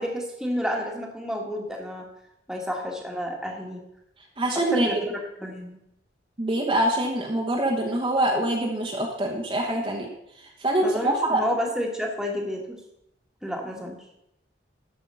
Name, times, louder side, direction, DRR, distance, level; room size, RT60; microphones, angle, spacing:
voice 1, 0.0-2.1 2.5-3.8 4.7-5.8 10.8-12.8 13.4-14.0, equal, 5° right, 0 dB, 1.6 m, -30 dB
voice 2, 4.4-4.9 6.4-10.1 10.6-11.4, right 1 dB, 30° right, 0 dB, 1.2 m, -24 dB
13.5 x 5.6 x 5.5 m, 0.82 s
head